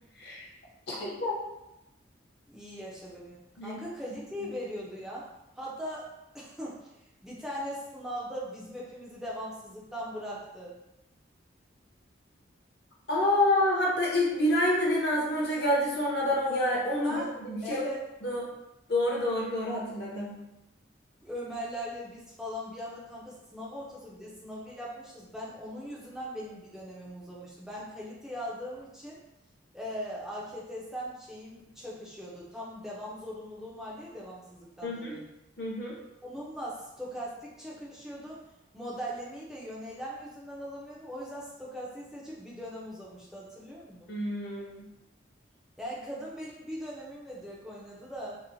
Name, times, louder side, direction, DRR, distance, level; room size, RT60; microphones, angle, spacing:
voice 1, 0.9-1.4 3.6-3.8 13.1-17.8 18.2-18.4 18.9-20.4 34.8-35.1 35.6-35.9 44.1-44.8, left 1 dB, 55° left, -4 dB, 0.7 m, -28 dB
voice 2, 2.5-5.3 5.6-6.1 6.3-6.9 7.2-10.8 17.0-17.3 17.6-18.1 21.2-29.2 29.7-35.3 36.2-38.4 38.7-44.1 45.8-48.4, equal, ahead, -6 dB, 0.5 m, -40 dB
2.9 x 2.0 x 2.6 m, 0.91 s
head